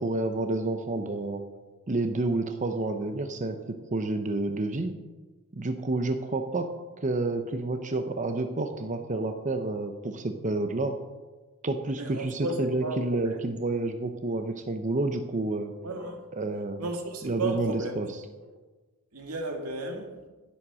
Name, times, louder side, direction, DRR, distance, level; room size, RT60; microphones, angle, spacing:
voice 1, 0.0-1.4 1.9-3.6 3.9-5.0 5.5-6.7 7.0-11.0 11.6-15.7 16.3-16.8 17.2-18.1, right 2 dB, 35° right, 7 dB, 0.7 m, -29 dB
voice 2, 11.9-13.4 15.8-16.2 16.8-17.9 19.1-20.2, right 2 dB, 85° right, 3 dB, 2.2 m, -33 dB
11.0 x 10.5 x 6.2 m, 1.3 s
head